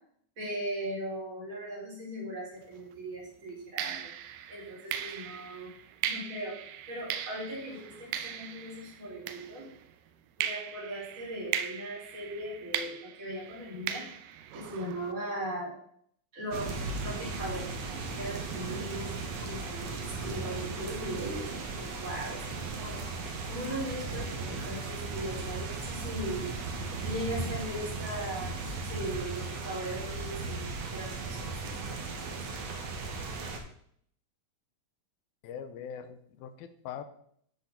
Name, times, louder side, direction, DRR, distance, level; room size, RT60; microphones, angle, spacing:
voice 1, 0.4-4.1 4.5-5.7 6.0-6.6 6.9-9.7 10.4-14.1 14.5-15.7 16.3-17.7 18.1-23.0 23.5-26.5 26.9-30.6 30.9-32.4, right 1 dB, 20° right, -5 dB, 4.3 m, -39 dB
sound 1, 2.6-2.8 3.8-9.9 10.4-15.1, right 10 dB, 80° right, 2.3 m, -38 dB
sound 2, 16.5-33.6, right 3 dB, 55° right, 2.1 m, -36 dB
voice 2, 35.4-37.0, left 8 dB, 85° left, 10 dB, 2.6 m, -42 dB
10.5 x 6.2 x 5.8 m, 0.66 s
omnidirectional pair, 4.2 m